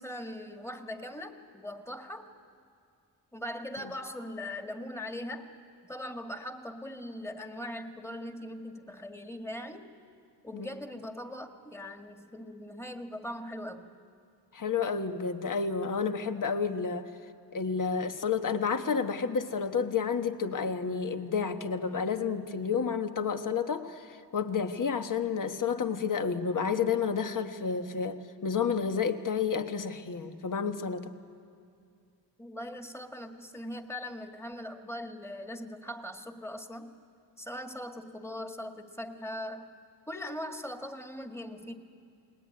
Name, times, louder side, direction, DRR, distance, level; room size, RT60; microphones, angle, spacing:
voice 1, 0.0-2.2 3.3-5.5 5.8-9.9 10.4-14.0 32.4-36.9 37.4-39.7 40.1-41.7, left 1 dB, 5° left, 5 dB, 1.8 m, -40 dB
voice 2, 14.5-17.1 17.5-31.1, left 6 dB, 50° left, 8 dB, 1.4 m, -30 dB
28.5 x 20.5 x 9.6 m, 2.4 s
cardioid pair, 95°, 40 cm